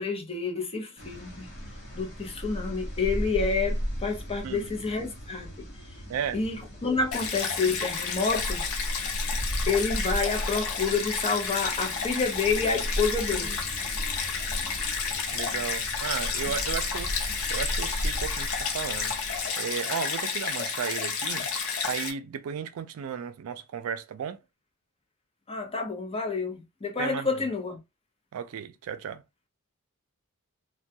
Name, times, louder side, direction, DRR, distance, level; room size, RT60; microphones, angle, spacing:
voice 1, 0.0-1.5 1.9-5.5 6.3-8.6 9.7-13.6 25.5-27.8, left 4 dB, 25° left, 0.6 m, -29 dB
sound 1, 1.0-19.5, equal, 50° left, 0.9 m, -36 dB
voice 2, 6.1-6.4 15.3-24.4 27.0-27.3 28.3-29.2, right 7 dB, 75° right, 0.3 m, -34 dB
Stream, 7.1-22.1, left 5 dB, 85° left, 0.6 m, -31 dB
2.2 x 2.2 x 2.7 m
head